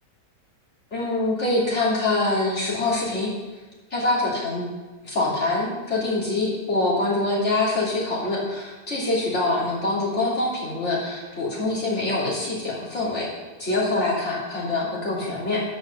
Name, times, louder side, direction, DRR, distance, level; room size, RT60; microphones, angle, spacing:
voice 1, 0.9-3.3 3.9-4.6 5.0-13.3 13.6-15.6, left 2 dB, 40° left, -6 dB, 3.3 m, -24 dB
9.8 x 5.7 x 6.7 m, 1.2 s
omnidirectional pair, 1.8 m